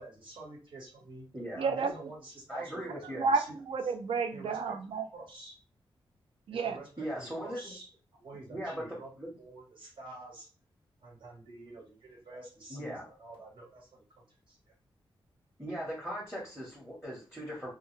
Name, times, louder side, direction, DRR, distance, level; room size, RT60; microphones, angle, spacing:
voice 1, 0.0-1.2 1.6-3.5 4.3-4.6 5.1-5.5 6.6-7.9 8.1-9.1 9.4-10.5 11.0-14.6, right 2 dB, 65° right, -2 dB, 1.2 m, -48 dB
voice 2, 1.6-2.1 3.1-5.1 6.5-6.8, right 4 dB, 80° right, 7 dB, 0.4 m, -31 dB
voice 3, 2.5-3.2 7.0-7.7 8.5-9.3 12.7-13.0 15.6-17.7, equal, 5° right, -4 dB, 0.8 m, -39 dB
2.3 x 2.1 x 3.1 m, 0.36 s
wide cardioid pair, 105°, 9 cm